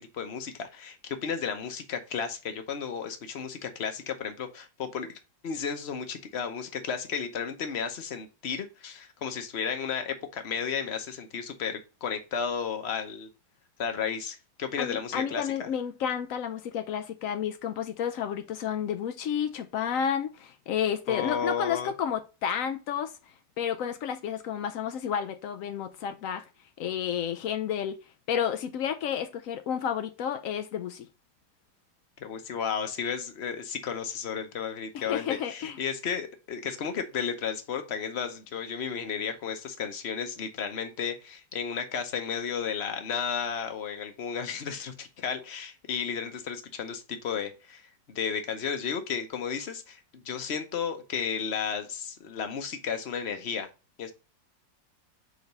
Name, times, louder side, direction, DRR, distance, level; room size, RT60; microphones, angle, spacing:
voice 1, 0.0-5.1 5.4-13.3 13.8-15.7 21.1-21.9 32.2-47.8 48.1-53.7 54.0-54.1, left 6 dB, 45° left, 0.9 m, -33 dB
voice 2, 14.8-23.1 23.6-26.4 26.8-28.0 28.3-31.1 34.9-35.8, left 8 dB, 85° left, 0.7 m, -31 dB
5.0 x 3.9 x 5.3 m
omnidirectional pair, 2.0 m